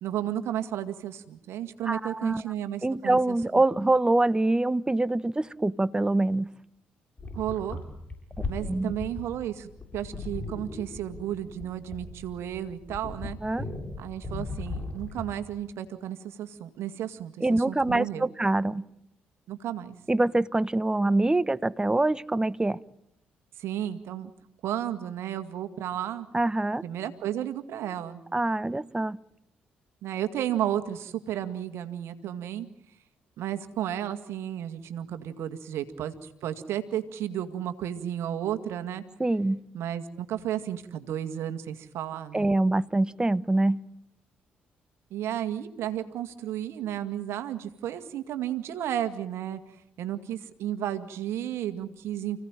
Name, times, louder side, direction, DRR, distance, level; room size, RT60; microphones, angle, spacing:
voice 1, 0.0-3.6 7.3-7.8 8.4-13.4 14.0-18.3 19.5-20.0 23.6-24.3 24.6-26.3 26.8-28.2 30.0-32.7 33.4-39.0 39.7-42.5 45.1-49.6 50.0-52.5, right 11 dB, 70° right, 2.0 m, -33 dB
voice 2, 1.8-2.4 2.8-6.5 8.7-8.9 13.4-13.7 17.4-18.8 20.1-22.8 26.3-26.8 28.3-29.2 39.2-39.6 42.3-43.8, right 2 dB, 15° right, 1.1 m, -25 dB
sound 1, 7.2-15.4, left 3 dB, 30° left, 7.8 m, -38 dB
30.0 x 17.0 x 9.1 m
hypercardioid pair, 45°, 5 cm